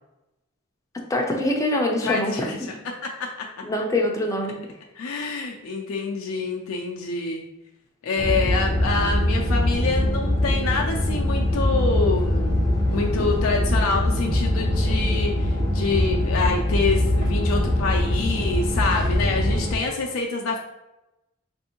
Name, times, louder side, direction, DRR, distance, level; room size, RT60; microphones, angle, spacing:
voice 1, 0.9-2.7 3.6-4.6, left 1 dB, 15° left, 1 dB, 0.4 m, -24 dB
voice 2, 2.0-3.3 5.0-7.4 8.0-20.6, left 4 dB, 80° left, 0 dB, 0.4 m, -27 dB
sound 1, 8.2-19.8, left 1 dB, 55° right, 1.1 m, -22 dB
3.4 x 2.6 x 2.8 m, 0.91 s
head